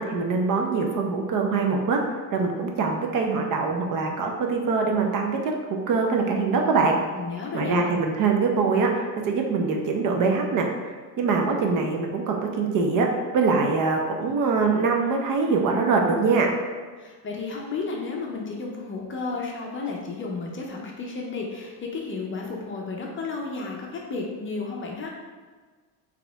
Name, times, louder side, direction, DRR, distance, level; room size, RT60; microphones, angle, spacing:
voice 1, 0.0-2.0 2.3-7.0 7.5-16.5, right 4 dB, 45° right, 2 dB, 0.6 m, -23 dB
voice 2, 7.1-7.8 17.0-25.1, left 4 dB, 25° left, -1 dB, 0.6 m, -32 dB
4.0 x 3.0 x 3.4 m, 1.4 s
supercardioid pair, 110°, 46 cm